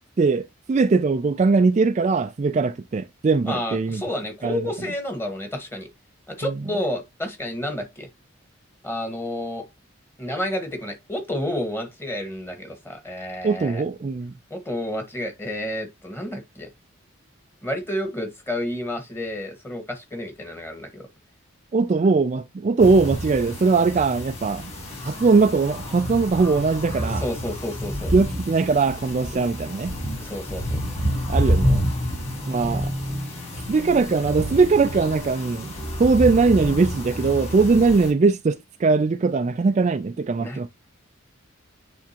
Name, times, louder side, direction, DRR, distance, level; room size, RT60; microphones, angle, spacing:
voice 1, 0.7-4.0 4.4-4.6 6.4-6.5 13.4-14.3 21.7-24.7 25.0-27.3 28.1-29.9 31.3-31.8 32.5-32.9 33.7-35.7 36.0-40.7, right 4 dB, 35° right, 0.3 m, -20 dB
voice 2, 3.4-5.9 6.3-8.1 8.8-9.7 10.2-13.8 14.5-16.7 17.6-21.1 27.2-28.1 30.2-30.8 40.4-40.6, left 1 dB, 10° left, 1.5 m, -30 dB
sound 1, 22.8-38.1, equal, 30° left, 3.6 m, -29 dB
10.0 x 3.5 x 2.9 m
head